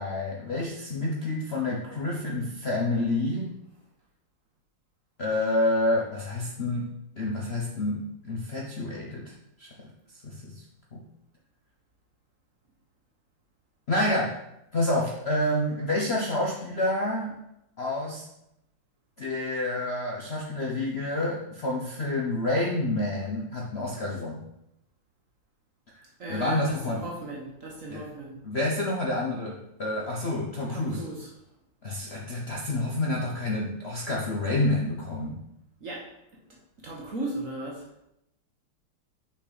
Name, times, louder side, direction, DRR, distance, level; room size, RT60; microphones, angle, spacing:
voice 1, 0.0-3.6 5.2-9.9 10.2-10.6 10.9-11.0 13.9-14.4 14.7-17.3 17.8-18.2 19.2-24.4 26.3-27.0 27.9-28.1 28.4-31.1 31.8-35.4, left 1 dB, 70° left, -2 dB, 0.6 m, -28 dB
voice 2, 26.2-28.4 30.7-31.3 35.8-36.1 36.8-37.9, right 2 dB, 45° right, -2 dB, 1.2 m, -36 dB
6.0 x 5.6 x 4.1 m, 0.81 s
omnidirectional pair, 2.4 m